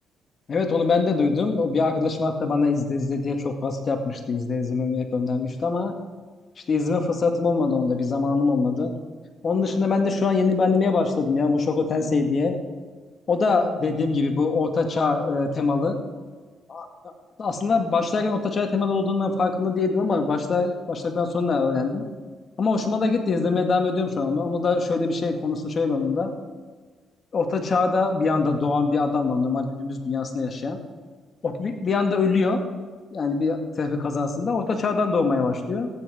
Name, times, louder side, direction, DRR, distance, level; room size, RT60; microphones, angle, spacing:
voice 1, 0.5-6.0 6.7-8.9 9.4-12.6 13.3-16.0 16.7-17.1 17.4-22.0 22.6-26.3 27.3-30.8 31.4-32.6 33.1-35.9, left 4 dB, 45° left, 4 dB, 2.0 m, -23 dB
14.5 x 10.0 x 5.0 m, 1.4 s
cardioid pair, 90°, 0 cm